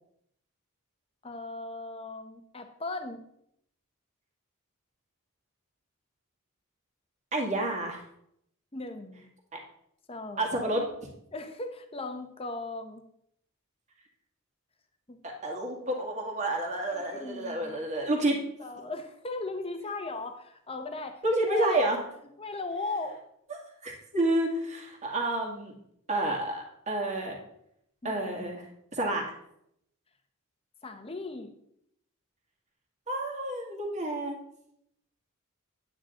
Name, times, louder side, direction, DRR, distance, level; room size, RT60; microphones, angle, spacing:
voice 1, 1.2-3.2 8.7-9.3 10.1-10.9 11.3-13.0 15.1-15.2 16.9-17.9 18.6-21.8 22.4-23.2 28.0-28.6 30.8-31.5, left 3 dB, 25° left, 7 dB, 0.9 m, -38 dB
voice 2, 7.3-8.0 9.5-9.6 10.4-10.8 15.2-18.4 21.2-22.0 23.8-25.7 26.1-27.4 28.0-28.6 28.9-29.2 33.1-34.4, right 1 dB, 30° right, 1 dB, 1.9 m, -29 dB
10.0 x 8.8 x 3.8 m, 0.74 s
head